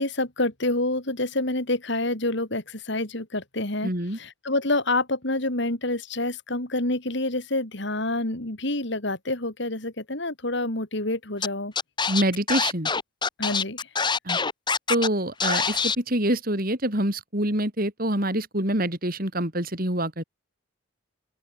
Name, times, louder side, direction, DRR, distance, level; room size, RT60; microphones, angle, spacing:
voice 1, 0.0-11.7 13.4-13.8, left 2 dB, 55° left, 3.3 m, -27 dB
voice 2, 3.8-4.2 12.1-12.9 14.2-14.4 14.9-20.2, right 1 dB, 45° right, 4.9 m, -26 dB
Scratching (performance technique), 11.4-11.5 11.7-15.1 15.4-15.9, left 5 dB, 20° left, 1.7 m, -25 dB
open air
head